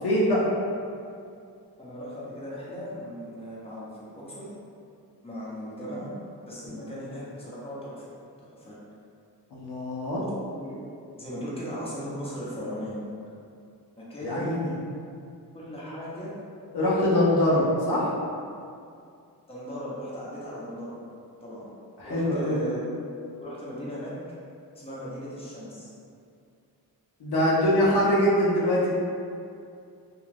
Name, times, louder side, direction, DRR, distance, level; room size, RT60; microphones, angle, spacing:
voice 1, 0.0-0.5 6.7-6.8 9.5-10.2 14.2-14.7 16.7-18.1 22.0-22.6 27.2-28.9, left 1 dB, 70° left, -6 dB, 0.7 m, -23 dB
voice 2, 1.8-4.5 5.2-6.1 6.4-8.1 8.4-8.8 10.5-10.8 11.1-13.0 14.1-14.6 15.5-16.3 19.5-20.9 21.4-21.7 22.0-24.1 24.7-25.9, equal, 15° left, -8 dB, 0.8 m, -37 dB
2.4 x 2.3 x 3.3 m, 2.4 s
cardioid pair, 70°, 41 cm